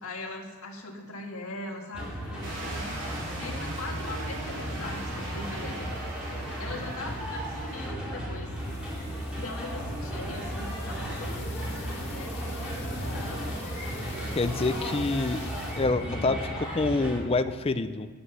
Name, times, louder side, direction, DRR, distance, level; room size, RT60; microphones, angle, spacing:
voice 1, 0.0-3.0 3.4-6.0 6.6-8.5 8.8-8.9 9.3-13.5 14.6-15.1 16.0-16.3, left 2 dB, 75° left, 1 dB, 1.7 m, -40 dB
sound 1, 1.9-17.2, equal, 5° right, 3.0 m, -35 dB
sound 2, 2.4-7.9, right 2 dB, 55° right, 3.2 m, -40 dB
sound 3, 8.4-15.9, left 2 dB, 50° left, 2.4 m, -44 dB
voice 2, 14.3-15.4 15.8-18.1, left 3 dB, 25° left, 10 dB, 0.4 m, -27 dB
9.4 x 8.8 x 6.8 m, 1.5 s
head